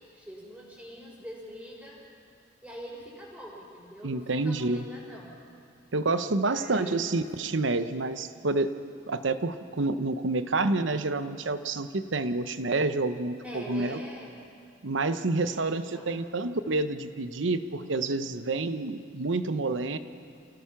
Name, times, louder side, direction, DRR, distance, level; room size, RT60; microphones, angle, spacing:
voice 1, 0.1-2.0 2.6-5.4 6.3-7.2 13.4-14.4 15.4-16.3, equal, 5° right, -10 dB, 4.7 m, -44 dB
voice 2, 4.0-4.8 5.9-8.7 9.1-14.0 14.8-20.0, right 3 dB, 75° right, 11 dB, 0.9 m, -28 dB
28.5 x 17.5 x 5.9 m, 2.4 s
head